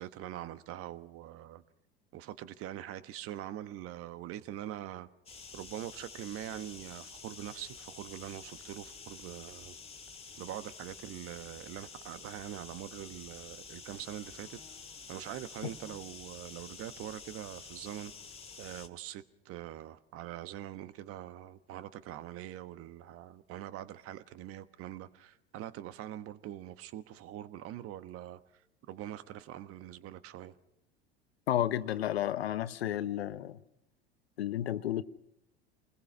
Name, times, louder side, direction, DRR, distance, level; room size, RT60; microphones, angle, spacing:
voice 1, 0.0-1.6 2.1-5.1 5.5-9.8 10.4-14.6 15.1-18.1 18.6-28.4 28.9-30.5, right 12 dB, 45° right, 1.3 m, -43 dB
sound 1, 5.3-18.9, left 5 dB, 20° left, 2.3 m, -49 dB
voice 2, 31.5-33.6 34.4-35.0, left 12 dB, 75° left, 1.0 m, -32 dB
28.0 x 20.5 x 6.2 m
figure-of-eight pair, 75°, 31 cm